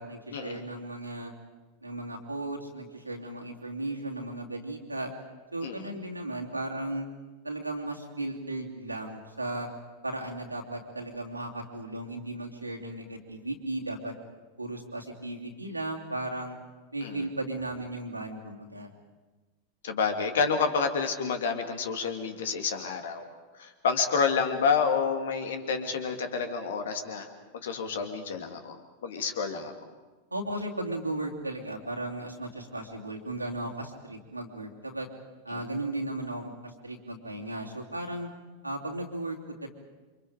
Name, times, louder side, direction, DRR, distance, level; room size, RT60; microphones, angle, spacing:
voice 1, 0.0-1.3 1.8-5.1 5.5-7.1 7.4-9.7 10.0-14.1 14.6-16.6 16.9-18.9 30.3-35.1 35.4-38.3 38.6-39.7, right 2 dB, 85° right, 0 dB, 2.8 m, -36 dB
voice 2, 19.8-23.3 23.6-27.3 27.6-28.8 29.0-29.7, left 5 dB, 60° left, 6 dB, 2.5 m, -29 dB
28.5 x 25.5 x 5.1 m, 1.3 s
figure-of-eight pair, 90°, 0 cm